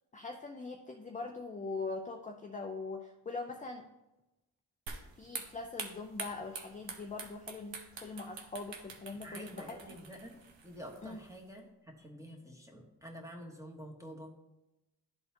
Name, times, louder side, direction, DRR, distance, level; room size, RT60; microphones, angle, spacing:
voice 1, 0.1-3.8 5.2-9.8 11.0-11.2, left 3 dB, 20° left, 3 dB, 0.5 m, -42 dB
sound 1, 4.9-11.4, right 5 dB, 85° right, 0.9 m, -46 dB
voice 2, 9.2-10.4 10.6-14.3, equal, 5° right, 0 dB, 1.3 m, -48 dB
11.5 x 4.0 x 2.9 m, 0.97 s
cardioid pair, 75°, 43 cm